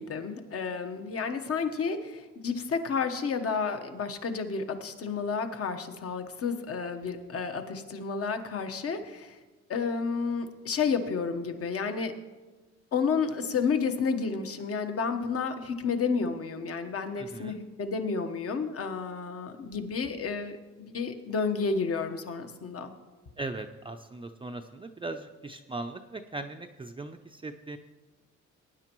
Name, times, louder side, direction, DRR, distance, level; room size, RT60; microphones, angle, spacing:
voice 1, 0.0-9.4 9.7-12.1 12.9-22.9, left 5 dB, 50° left, 7 dB, 1.2 m, -31 dB
voice 2, 17.2-17.6 23.4-27.8, right 2 dB, 15° right, 4 dB, 0.5 m, -39 dB
18.5 x 9.8 x 3.0 m, 1.2 s
cardioid pair, 90°, 30 cm